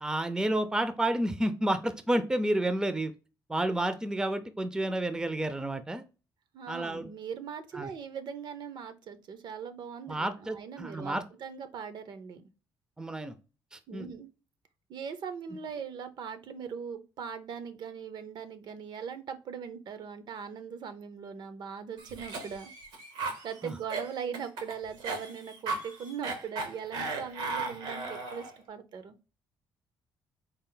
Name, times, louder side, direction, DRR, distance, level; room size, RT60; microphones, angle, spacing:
voice 1, 0.0-3.1 3.5-6.0 6.7-7.1 7.7-7.9 10.1-11.2 13.0-13.4 13.7-14.1 23.6-23.7, right 1 dB, 10° right, 0.4 m, -30 dB
voice 2, 6.5-12.4 13.9-14.3 14.9-22.7 23.4-29.2, right 7 dB, 60° right, 0.6 m, -40 dB
Cough, 22.0-28.6, right 3 dB, 90° right, 1.0 m, -36 dB
4.3 x 2.0 x 3.7 m
cardioid pair, 95°, 8 cm